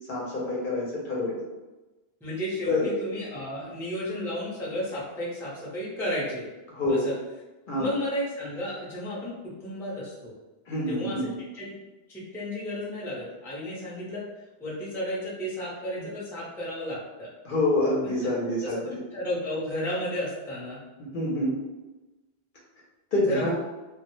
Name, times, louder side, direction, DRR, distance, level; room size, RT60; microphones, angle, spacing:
voice 1, 0.1-1.4 2.7-2.8 3.6-3.7 6.7-7.1 7.7-7.9 10.7-11.3 16.0-16.1 17.4-18.8 21.0-21.5 23.1-23.5, left 1 dB, 60° left, -5 dB, 0.6 m, -27 dB
voice 2, 2.2-6.5 6.9-7.1 7.8-10.3 10.9-11.2 11.5-11.7 12.1-14.2 14.6-17.3 18.6-20.8 23.3-23.5, left 1 dB, 5° left, -7 dB, 0.4 m, -33 dB
2.1 x 2.0 x 2.9 m, 1.1 s
omnidirectional pair, 1.1 m